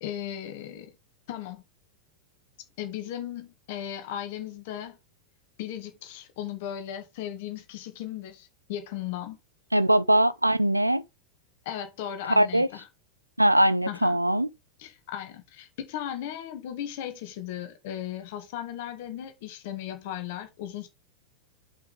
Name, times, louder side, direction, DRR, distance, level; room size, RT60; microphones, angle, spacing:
voice 1, 0.0-0.9 1.3-1.6 2.8-5.0 5.6-9.4 11.7-12.9 13.9-14.2 14.8-20.9, left 11 dB, 50° left, 2.1 m, -36 dB
voice 2, 9.7-11.0 12.4-12.7 13.4-14.5, right 1 dB, 85° right, 0.5 m, -21 dB
6.1 x 5.8 x 4.9 m
figure-of-eight pair, 90°, 0 cm